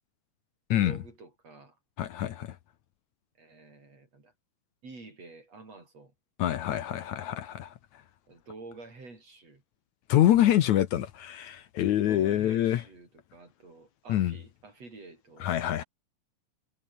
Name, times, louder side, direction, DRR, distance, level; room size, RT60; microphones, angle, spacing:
voice 1, 0.7-1.8 3.4-4.3 4.8-6.1 8.3-9.6 12.0-15.5, right 3 dB, 50° right, 8.2 m, -48 dB
voice 2, 2.0-2.6 6.4-7.7 10.1-12.8 14.1-14.4 15.4-15.8, left 12 dB, 70° left, 2.3 m, -25 dB
omnidirectional pair, 3.7 m